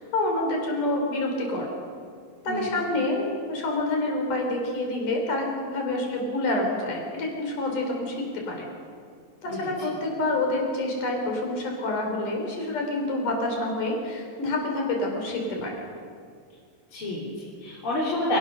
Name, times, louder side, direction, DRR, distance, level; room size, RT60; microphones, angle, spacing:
voice 1, 0.0-1.7 2.4-8.7 9.4-15.7, left 2 dB, 60° left, 1 dB, 5.6 m, -27 dB
voice 2, 2.5-2.8 9.5-9.7 16.9-18.4, left 1 dB, 35° left, -7 dB, 4.3 m, -29 dB
28.5 x 18.0 x 6.5 m, 2.2 s
omnidirectional pair, 4.2 m